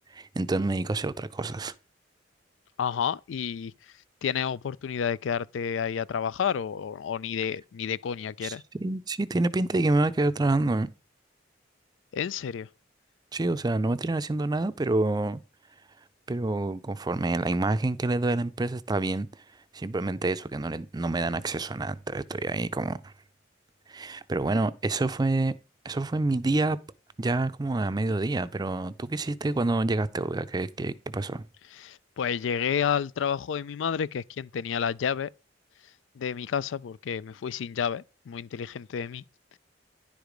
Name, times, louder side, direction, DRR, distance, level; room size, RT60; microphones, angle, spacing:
voice 1, 0.1-1.7 8.4-10.9 13.3-15.4 16.3-19.3 19.7-23.1 23.9-25.5 25.8-26.8 27.2-31.4, right 2 dB, 20° right, 0.4 m, -27 dB
voice 2, 2.8-3.7 4.2-8.6 12.1-12.7 31.7-35.3 36.2-39.2, left 7 dB, 90° left, 0.4 m, -30 dB
10.5 x 4.8 x 5.1 m
head